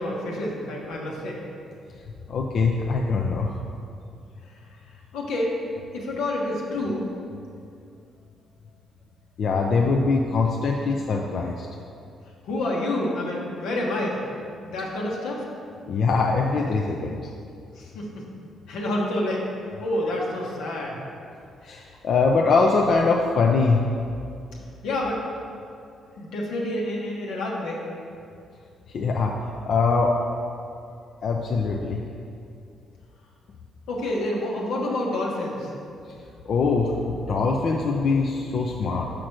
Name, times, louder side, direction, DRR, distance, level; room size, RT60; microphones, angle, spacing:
voice 1, 0.0-1.4 4.5-4.6 5.1-5.5 5.9-7.1 12.4-14.2 14.6-15.4 17.8-18.2 18.7-19.4 19.8-21.0 24.8-25.2 26.2-27.8 33.9-35.7, left 1 dB, 90° left, -3 dB, 1.4 m, -28 dB
voice 2, 2.3-3.6 9.4-11.7 15.9-17.3 21.6-23.8 28.9-29.3 29.7-30.2 31.2-32.0 36.5-39.1, left 4 dB, 60° left, 0 dB, 0.5 m, -22 dB
5.9 x 5.1 x 6.1 m, 2.5 s
cardioid pair, 90°, 0 cm